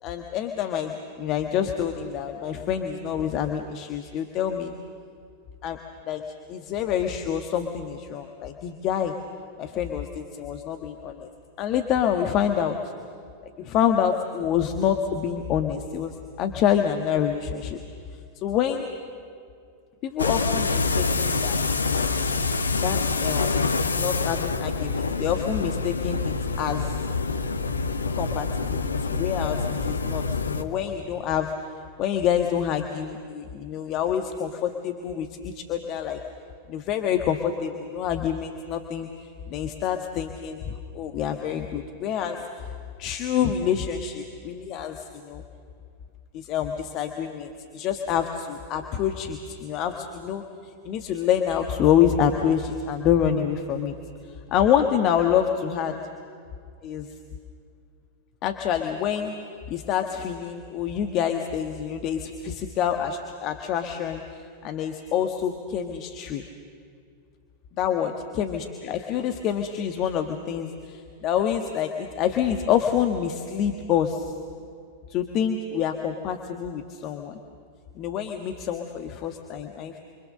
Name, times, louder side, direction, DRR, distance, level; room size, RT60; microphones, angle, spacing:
voice 1, 0.0-4.7 5.6-5.8 6.1-9.1 9.6-11.3 11.6-12.8 13.6-17.8 18.4-18.9 20.0-22.1 22.8-23.5 24.0-27.0 28.1-31.5 32.0-36.2 36.7-39.1 39.5-42.7 43.0-45.4 46.3-54.0 54.5-56.0 56.8-57.1 58.4-59.4 59.7-66.5 67.7-74.3 75.1-77.4 77.9-80.0, left 9 dB, 40° left, 5 dB, 1.4 m, -27 dB
sound 1, 20.2-30.6, left 4 dB, 75° left, 1.1 m, -26 dB
29.0 x 24.0 x 6.6 m, 2.3 s
figure-of-eight pair, 90°, 0 cm